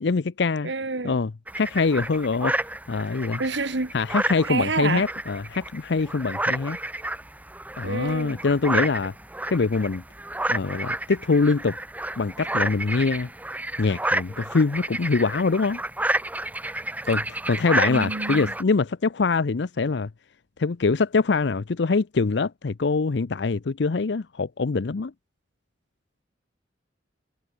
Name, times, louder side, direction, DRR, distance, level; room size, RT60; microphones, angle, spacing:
voice 1, 0.0-0.7 1.0-2.5 2.9-3.4 3.9-6.8 7.8-9.1 9.5-10.0 10.5-11.8 12.2-13.3 13.8-15.8 17.1-20.1 20.6-25.1, left 4 dB, 65° left, 0.6 m, -24 dB
voice 2, 0.6-1.2 3.4-3.9 4.4-5.1 7.8-8.4 17.9-18.5, right 3 dB, 70° right, 1.5 m, -28 dB
sound 1, 1.5-18.6, right 1 dB, 10° right, 1.9 m, -30 dB
head